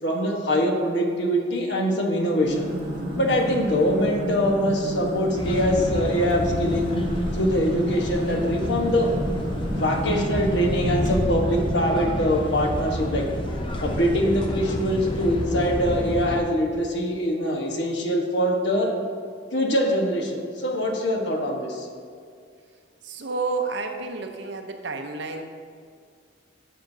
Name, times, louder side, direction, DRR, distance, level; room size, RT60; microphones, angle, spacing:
voice 1, 0.0-2.7 3.2-6.9 7.3-9.1 9.7-13.2 13.8-18.9 19.5-21.9, equal, 65° left, 1 dB, 1.1 m, -23 dB
sound 1, 2.3-11.5, equal, 45° right, 2.2 m, -30 dB
sound 2, 5.4-16.4, left 1 dB, 25° left, 0.6 m, -29 dB
voice 2, 23.0-25.4, right 3 dB, 65° right, 5 dB, 0.7 m, -30 dB
12.0 x 6.6 x 2.7 m, 2.2 s
head